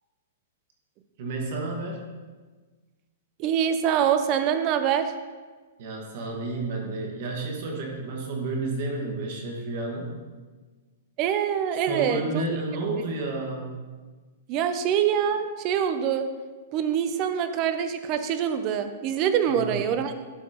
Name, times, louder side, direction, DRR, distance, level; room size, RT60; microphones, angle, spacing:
voice 1, 1.2-2.0 5.8-10.1 11.9-13.8 19.5-19.8, right 2 dB, 45° right, 1 dB, 1.5 m, -31 dB
voice 2, 3.4-5.1 11.2-12.5 12.9-13.1 14.5-16.3 16.7-20.1, right 8 dB, 25° right, 9 dB, 0.5 m, -25 dB
11.0 x 5.7 x 2.9 m, 1.4 s
hypercardioid pair, 170°, 0 cm